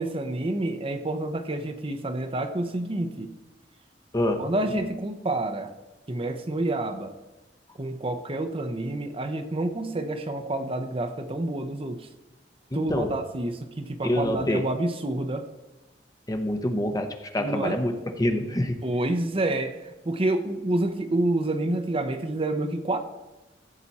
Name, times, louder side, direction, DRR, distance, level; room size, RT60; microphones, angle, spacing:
voice 1, 0.0-3.3 4.4-5.7 6.1-7.1 7.8-12.1 12.7-15.4 17.4-17.8 18.8-23.0, right 2 dB, 30° right, 7 dB, 0.8 m, -28 dB
voice 2, 12.7-13.1 14.0-14.6 16.3-18.8, left 1 dB, 20° left, 6 dB, 0.8 m, -26 dB
15.0 x 7.8 x 4.2 m, 1.1 s
head